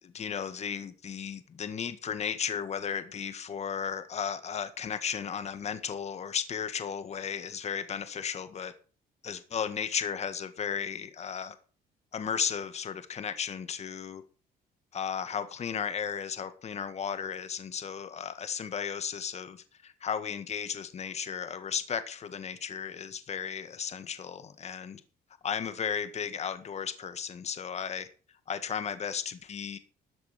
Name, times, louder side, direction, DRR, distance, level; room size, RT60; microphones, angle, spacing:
voice 1, 0.0-8.7 9.2-11.5 12.1-14.2 14.9-25.0 25.4-28.1 28.5-29.8, left 7 dB, 40° left, 1.6 m, -35 dB
13.5 x 8.2 x 5.8 m
cardioid pair, 110°, 17 cm